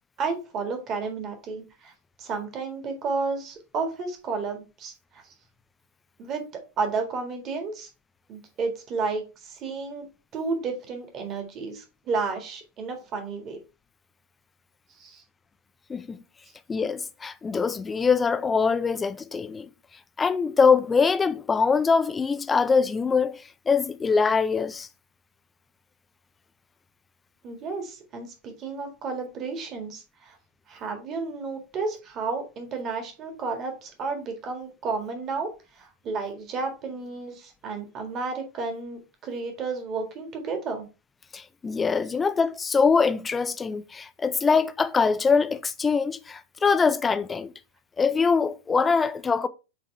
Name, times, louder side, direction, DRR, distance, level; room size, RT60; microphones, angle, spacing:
voice 1, 0.2-1.9 2.2-5.2 6.2-7.9 8.3-13.6 15.0-15.2 27.4-30.4 30.7-40.9, right 4 dB, 30° right, 1.8 m, -32 dB
voice 2, 16.7-19.7 20.2-24.9 41.3-47.5 48.0-49.5, left 5 dB, 15° left, 0.5 m, -23 dB
8.4 x 3.6 x 3.3 m
figure-of-eight pair, 90°, 0 cm